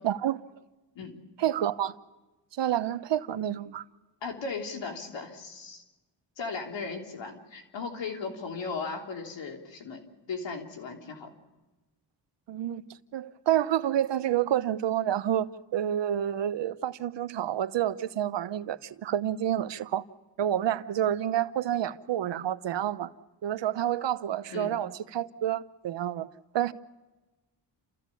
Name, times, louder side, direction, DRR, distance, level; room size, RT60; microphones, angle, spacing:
voice 1, 0.0-0.4 1.4-2.0 2.6-3.8 12.5-12.8 13.1-20.0 20.4-23.1 23.4-26.3 26.5-26.7, right 11 dB, 75° right, 1.0 m, -29 dB
voice 2, 4.2-5.8 6.4-10.0 10.3-11.3 24.5-24.7, left 4 dB, 80° left, 3.4 m, -37 dB
29.5 x 14.5 x 8.4 m
cardioid pair, 70°, 44 cm